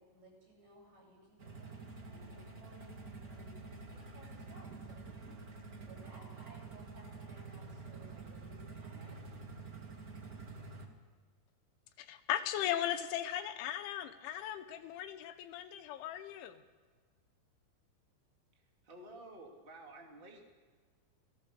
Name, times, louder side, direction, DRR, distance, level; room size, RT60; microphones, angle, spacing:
voice 1, 0.0-5.1 5.8-9.3, right 1 dB, 50° right, -2 dB, 9.9 m, -59 dB
sound 1, 1.4-10.9, right 4 dB, 90° right, 0.8 m, -48 dB
voice 2, 12.0-16.6, left 11 dB, 80° left, 10 dB, 3.1 m, -37 dB
voice 3, 18.5-20.5, right 2 dB, 25° right, 0 dB, 1.1 m, -52 dB
28.5 x 18.5 x 6.8 m, 1.5 s
omnidirectional pair, 5.6 m